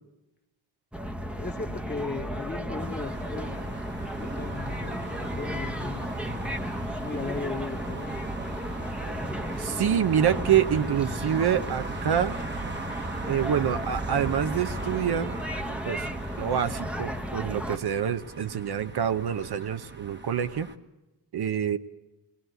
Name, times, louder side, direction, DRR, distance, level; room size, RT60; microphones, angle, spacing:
sound 1, 0.9-17.8, equal, 5° right, 0.9 m, -34 dB
voice 1, 1.3-3.5 4.2-6.1 7.0-8.1, left 4 dB, 25° left, 6 dB, 1.2 m, -36 dB
sound 2, 2.8-20.7, right 3 dB, 25° right, 1.2 m, -39 dB
voice 2, 9.6-12.4 13.2-15.3 15.7-16.1 16.4-20.7 21.3-21.8, right 9 dB, 65° right, 11 dB, 0.8 m, -26 dB
21.5 x 18.5 x 7.9 m, 1.0 s
wide cardioid pair, 105°, 42 cm